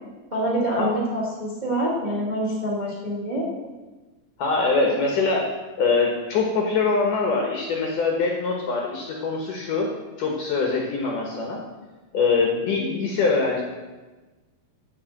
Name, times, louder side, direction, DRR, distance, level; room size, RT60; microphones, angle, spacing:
voice 1, 0.3-3.4, right 1 dB, 65° right, -4 dB, 0.4 m, -26 dB
voice 2, 4.4-5.5 5.8-9.9 10.2-11.6 12.1-13.6, left 4 dB, 70° left, 0 dB, 2.0 m, -23 dB
13.0 x 5.1 x 7.7 m, 1.2 s
omnidirectional pair, 5.3 m